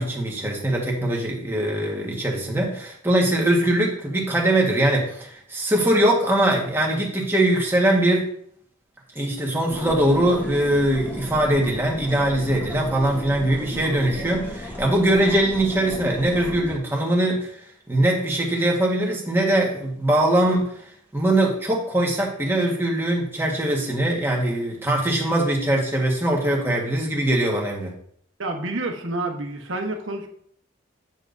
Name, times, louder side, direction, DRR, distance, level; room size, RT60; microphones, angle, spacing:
voice 1, 0.0-8.2 9.1-17.6 17.9-20.8 21.1-27.9, right 1 dB, 10° right, -1 dB, 1.5 m, -22 dB
sound 1, 9.7-16.7, left 1 dB, 10° left, 1.6 m, -35 dB
voice 2, 28.4-30.3, right 2 dB, 75° right, 3 dB, 1.2 m, -28 dB
9.6 x 6.8 x 2.7 m, 0.65 s
head